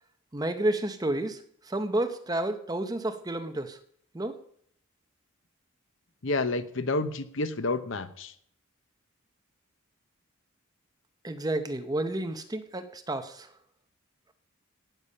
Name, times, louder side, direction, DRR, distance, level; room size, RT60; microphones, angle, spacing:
voice 1, 0.3-3.8 4.1-4.4 11.2-13.6, right 1 dB, 15° right, 9 dB, 0.7 m, -31 dB
voice 2, 6.2-8.3, left 2 dB, 60° left, 12 dB, 0.8 m, -29 dB
17.0 x 6.9 x 5.5 m, 0.66 s
head